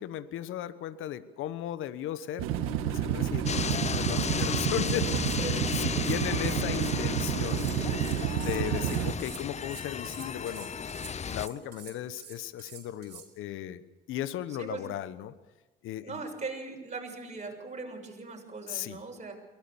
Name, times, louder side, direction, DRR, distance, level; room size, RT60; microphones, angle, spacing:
voice 1, 0.0-2.5 2.8-5.1 5.4-7.7 8.3-10.7 11.3-13.8 14.1-15.3 15.8-16.2 18.7-19.0, left 11 dB, 75° left, 15 dB, 1.1 m, -36 dB
sound 1, 2.4-9.1, right 10 dB, 80° right, 1.6 m, -30 dB
sound 2, 3.5-11.5, left 6 dB, 30° left, 0.6 m, -34 dB
sound 3, 4.2-13.3, right 7 dB, 55° right, 5.0 m, -49 dB
voice 2, 5.1-5.6 6.7-6.8 14.6-14.8 16.0-19.3, right 3 dB, 35° right, 1 dB, 6.7 m, -39 dB
23.0 x 18.0 x 7.1 m, 1.1 s
supercardioid pair, 60°, 21 cm